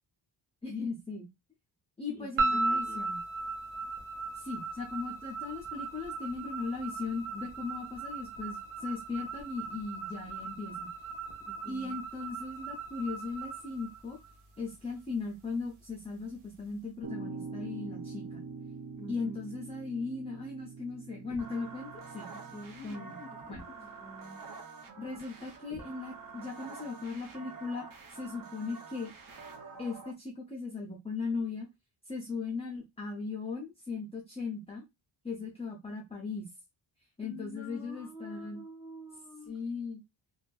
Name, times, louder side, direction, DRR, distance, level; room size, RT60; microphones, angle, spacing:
voice 1, 0.6-1.3 2.0-3.2 4.3-10.9 11.7-14.2 14.6-18.4 19.1-22.3 22.8-23.2 23.5-23.6 25.0-29.1 29.8-31.7 32.1-34.8 35.2-36.5 37.2-38.6 39.5-40.0, left 4 dB, 15° left, 0.4 m, -38 dB
voice 2, 2.1-3.2 11.4-12.0 19.0-19.4 22.3-24.4 37.2-39.6, left 2 dB, 10° right, 1.1 m, -48 dB
sound 1, 2.4-14.7, right 3 dB, 85° right, 0.8 m, -37 dB
sound 2, 17.0-23.4, right 4 dB, 60° right, 1.1 m, -44 dB
sound 3, 21.3-30.1, right 4 dB, 45° right, 0.6 m, -47 dB
2.5 x 2.3 x 2.2 m
wide cardioid pair, 145°, 48 cm